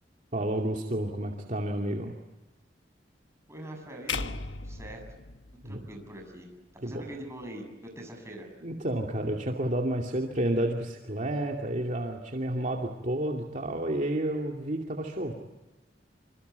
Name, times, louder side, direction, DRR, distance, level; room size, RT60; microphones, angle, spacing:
voice 1, 0.3-2.2 5.6-5.8 6.8-7.0 8.6-15.3, right 1 dB, 45° right, 1 dB, 2.6 m, -30 dB
voice 2, 3.5-4.4 4.6-5.0 5.6-6.5 6.8-8.5, right 1 dB, 15° right, 2 dB, 7.5 m, -43 dB
sound 1, 4.1-6.3, left 4 dB, 85° left, 1.3 m, -37 dB
27.0 x 26.0 x 8.2 m, 1.1 s
head